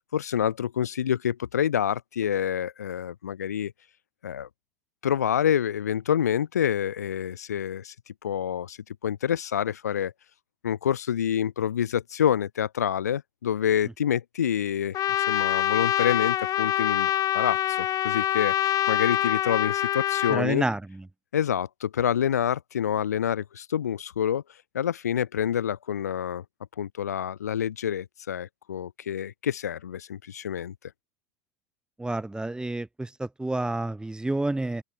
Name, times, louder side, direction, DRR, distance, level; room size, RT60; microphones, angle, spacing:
voice 1, 0.1-3.7 4.2-4.5 5.0-7.9 8.2-10.1 10.6-20.6 21.3-24.4 24.7-26.4 26.8-30.7, left 9 dB, 85° left, 7.4 m, -27 dB
Trumpet, 14.9-20.4, left 12 dB, 45° left, 4.8 m, -25 dB
voice 2, 20.3-21.0 32.0-34.8, right 2 dB, 10° right, 6.3 m, -29 dB
open air
hypercardioid pair, 80°, 8 cm